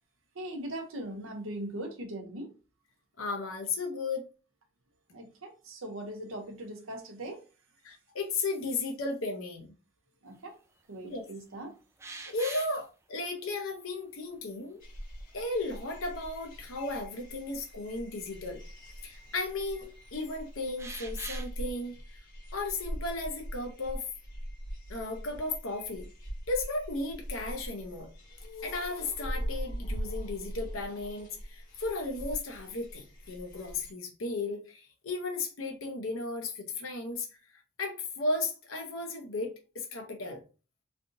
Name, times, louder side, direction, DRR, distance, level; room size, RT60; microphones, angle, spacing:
voice 1, 0.3-2.5 5.1-7.4 10.2-10.6 10.9-11.8, right 1 dB, 80° right, 0.8 m, -40 dB
voice 2, 3.2-4.2 7.8-9.7 11.0-11.2 12.1-14.8 15.3-18.6 19.0-21.9 22.5-24.0 24.9-26.1 26.5-28.1 28.6-37.3 37.5-40.4, left 3 dB, 90° left, 0.7 m, -35 dB
sound 1, 12.0-12.8 14.3-14.4 15.3-16.2 16.6-16.7 18.6-18.7 20.8-21.5, right 3 dB, 15° right, 0.4 m, -43 dB
sound 2, 14.8-33.9, equal, 45° left, 1.6 m, -42 dB
3.3 x 2.6 x 2.6 m
head